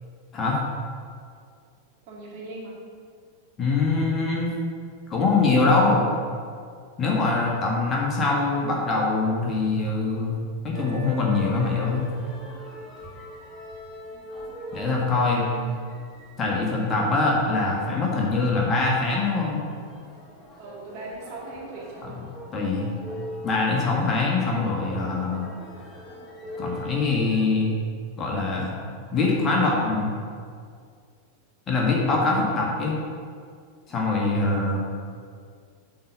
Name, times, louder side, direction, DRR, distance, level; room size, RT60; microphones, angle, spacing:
voice 1, 2.1-2.8 15.2-15.7 20.6-22.2, right 2 dB, 45° right, -4 dB, 2.3 m, -39 dB
voice 2, 3.6-4.5 5.1-6.1 7.0-10.4 10.6-12.1 14.7-15.4 16.4-19.6 22.0-22.1 22.5-22.9 23.4-25.5 26.6-27.7 28.2-28.7 29.1-30.1 31.7-33.0 33.9-34.8, left 3 dB, 25° left, -2 dB, 1.7 m, -23 dB
sound 1, 10.7-27.5, left 1 dB, 10° left, 1.8 m, -41 dB
8.6 x 4.1 x 7.1 m, 2.1 s
figure-of-eight pair, 90°, 0 cm